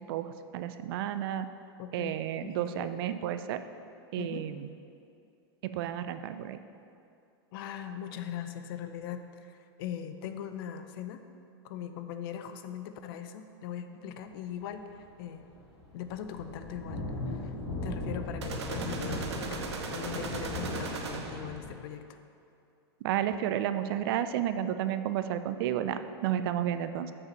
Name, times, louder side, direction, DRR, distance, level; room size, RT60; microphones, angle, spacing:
voice 1, 0.0-1.5 1.9-3.6 4.1-4.7 5.6-6.6 23.0-27.1, right 10 dB, 60° right, 11 dB, 0.5 m, -32 dB
voice 2, 1.8-2.2 2.4-2.9 4.2-4.5 7.5-11.2 11.6-15.5 15.9-17.6 17.8-22.2, left 9 dB, 60° left, 9 dB, 0.6 m, -40 dB
sound 1, 15.0-15.2 15.4-21.7, left 2 dB, 80° left, 2.0 m, -38 dB
sound 2, 18.4-21.6, right 4 dB, 90° right, 1.0 m, -38 dB
7.3 x 4.8 x 6.5 m, 2.6 s
hypercardioid pair, 125°, 14 cm